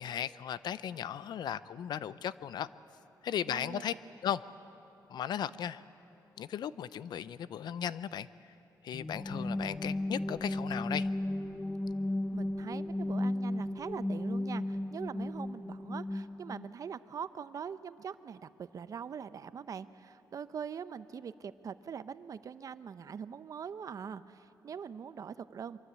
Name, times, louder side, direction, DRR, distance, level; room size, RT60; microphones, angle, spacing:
voice 1, 0.0-2.7 3.2-3.9 4.2-4.4 5.1-5.8 6.4-8.3 8.8-11.1, left 9 dB, 80° left, 16 dB, 0.6 m, -36 dB
voice 2, 3.4-4.0 12.3-25.8, right 7 dB, 55° right, 14 dB, 0.7 m, -43 dB
sound 1, 8.9-16.7, left 1 dB, 15° left, 0.5 m, -35 dB
24.5 x 23.0 x 8.2 m, 2.9 s
wide cardioid pair, 135°, 7 cm